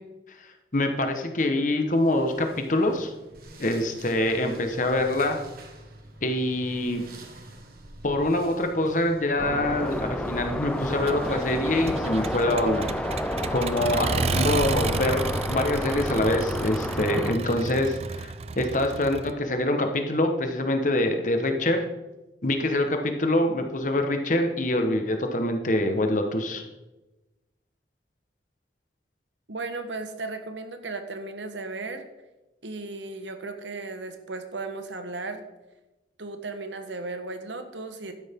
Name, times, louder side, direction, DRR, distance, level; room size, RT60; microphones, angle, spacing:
voice 1, 0.7-3.1 3.6-5.4 6.2-7.0 8.0-12.9 13.5-21.8 22.4-26.6, left 1 dB, 45° left, 5 dB, 1.3 m, -25 dB
sound 1, 1.9-19.1, right 1 dB, 55° right, 1.7 m, -46 dB
sound 2, 9.4-17.3, left 1 dB, 5° left, 0.6 m, -31 dB
Accelerating revving vroom, 11.1-19.3, right 4 dB, 35° right, 0.4 m, -32 dB
voice 2, 29.5-32.0 32.6-35.4 36.2-38.1, right 3 dB, 85° right, 7 dB, 1.3 m, -35 dB
12.0 x 10.0 x 3.7 m, 1.0 s
head